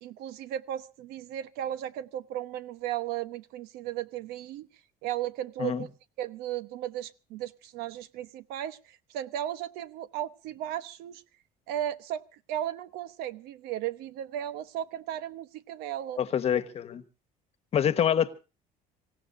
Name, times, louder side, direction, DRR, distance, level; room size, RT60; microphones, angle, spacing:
voice 1, 0.0-4.7 5.0-5.9 6.2-11.2 11.7-16.2, right 11 dB, 85° right, 1.0 m, -35 dB
voice 2, 16.2-17.0 17.7-18.3, left 9 dB, 40° left, 1.2 m, -26 dB
26.5 x 16.5 x 2.6 m
cardioid pair, 135°, 16 cm